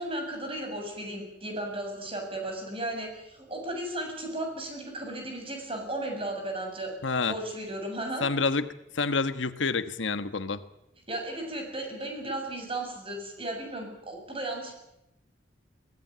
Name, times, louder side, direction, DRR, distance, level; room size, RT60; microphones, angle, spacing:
voice 1, 0.0-6.9 7.3-8.2 11.1-14.7, right 1 dB, 30° right, 2 dB, 7.4 m, -35 dB
voice 2, 7.0-7.4 8.2-8.7 8.9-10.6, left 4 dB, 80° left, 11 dB, 1.3 m, -28 dB
23.0 x 17.5 x 9.2 m, 0.84 s
head